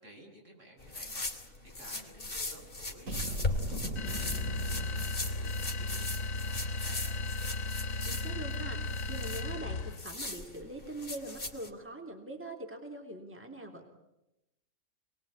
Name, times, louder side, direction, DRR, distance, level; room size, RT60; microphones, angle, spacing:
voice 1, 0.0-1.3 1.6-7.0, right 1 dB, 65° right, 1 dB, 7.9 m, -55 dB
sound 1, 0.8-11.7, left 2 dB, 40° left, 3.7 m, -39 dB
sound 2, 3.1-5.8, right 2 dB, 90° right, 2.6 m, -39 dB
sound 3, 4.0-10.1, left 2 dB, 80° left, 1.6 m, -35 dB
voice 2, 8.0-13.9, right 1 dB, 10° right, 3 dB, 3.1 m, -43 dB
28.5 x 21.0 x 9.8 m, 0.92 s
omnidirectional pair, 1.4 m